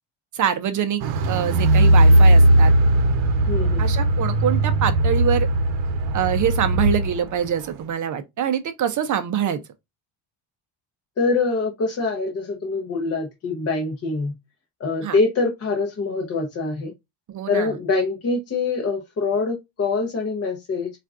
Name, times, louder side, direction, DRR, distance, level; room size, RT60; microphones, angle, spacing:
voice 1, 0.3-2.7 3.8-5.5 6.1-9.6 15.0-15.2 17.3-17.7, right 9 dB, 40° right, 0.5 m, -24 dB
Car, 1.0-7.2 7.4-7.5, right 1 dB, 70° right, 0.8 m, -17 dB
voice 2, 3.5-3.9 11.2-14.3 14.8-16.9 17.5-20.9, left 3 dB, 30° left, 0.7 m, -24 dB
4.4 x 2.4 x 2.4 m
cardioid pair, 155°, 48 cm